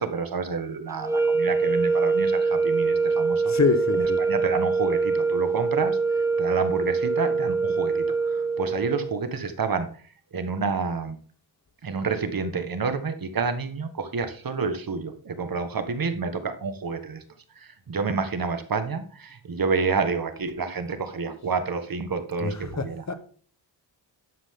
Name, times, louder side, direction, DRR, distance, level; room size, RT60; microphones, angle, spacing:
voice 1, 0.0-3.5 3.9-10.0 10.3-11.2 11.8-17.2 17.5-23.0, right 4 dB, 50° right, 8 dB, 1.5 m, -29 dB
sound 1, 1.0-9.2, right 4 dB, 5° right, 1.1 m, -24 dB
voice 2, 3.5-4.2 22.4-23.1, left 5 dB, 35° left, 9 dB, 1.2 m, -25 dB
11.0 x 7.7 x 3.7 m, 0.43 s
wide cardioid pair, 110°, 45 cm